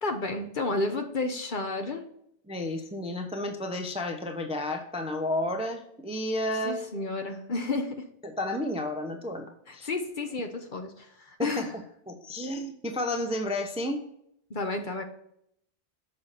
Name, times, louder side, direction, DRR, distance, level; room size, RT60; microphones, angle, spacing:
voice 1, 0.0-2.1 6.5-8.0 9.7-11.7 14.5-15.0, left 3 dB, 45° left, 5 dB, 1.0 m, -31 dB
voice 2, 2.5-6.9 8.2-9.9 11.4-11.7 12.1-14.0, left 1 dB, 5° right, 4 dB, 0.6 m, -31 dB
6.9 x 5.1 x 4.1 m, 0.72 s
omnidirectional pair, 1.2 m